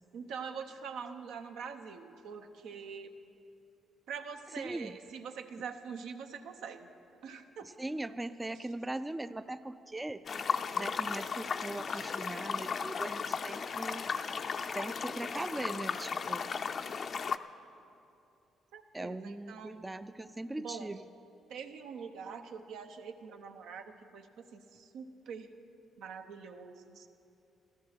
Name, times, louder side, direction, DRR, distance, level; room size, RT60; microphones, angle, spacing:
voice 1, 0.1-3.1 4.1-6.9 7.2-7.7 8.5-8.7 11.9-12.1 18.7-19.8 20.6-21.0 21.5-25.5 26.0-27.1, right 6 dB, 85° right, 5 dB, 0.9 m, -44 dB
voice 2, 4.6-4.9 7.8-10.2 10.8-14.1 14.7-16.5 18.9-21.1, right 2 dB, 15° right, 12 dB, 0.4 m, -40 dB
sound 1, 10.3-17.4, left 6 dB, 50° left, 0.5 m, -35 dB
14.0 x 14.0 x 6.0 m, 2.7 s
cardioid pair, 90°, 0 cm